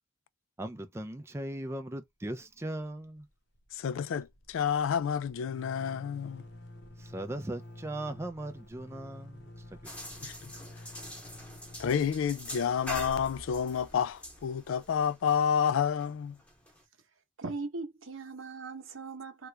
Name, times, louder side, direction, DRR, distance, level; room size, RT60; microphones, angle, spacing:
voice 1, 0.6-3.3 7.0-9.5 9.8-9.9, right 1 dB, 15° right, 0.4 m, -38 dB
sound 1, 2.4-2.9 3.2-3.3 3.5-14.2, left 1 dB, 60° left, 0.8 m, -50 dB
voice 2, 3.7-6.4 10.2-10.5 11.8-16.4, left 7 dB, 80° left, 0.3 m, -29 dB
sound 2, 9.8-16.8, equal, 5° left, 1.0 m, -45 dB
voice 3, 17.4-19.5, right 3 dB, 80° right, 0.9 m, -39 dB
2.9 x 2.4 x 3.2 m
head